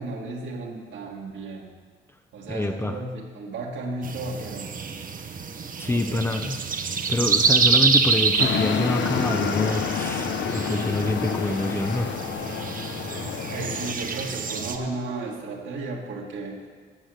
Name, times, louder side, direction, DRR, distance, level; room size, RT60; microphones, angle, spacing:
voice 1, 0.0-1.7 2.3-4.7 5.8-6.4 13.5-16.6, right 2 dB, 70° right, 0 dB, 2.2 m, -34 dB
voice 2, 2.5-3.0 5.8-6.6 7.1-12.1, left 2 dB, 10° left, 6 dB, 0.8 m, -26 dB
sound 1, 4.0-14.8, right 5 dB, 45° right, 1.1 m, -27 dB
sound 2, 8.4-13.9, left 7 dB, 65° left, 0.9 m, -28 dB
13.0 x 5.7 x 7.9 m, 1.6 s
cardioid pair, 90°, 20 cm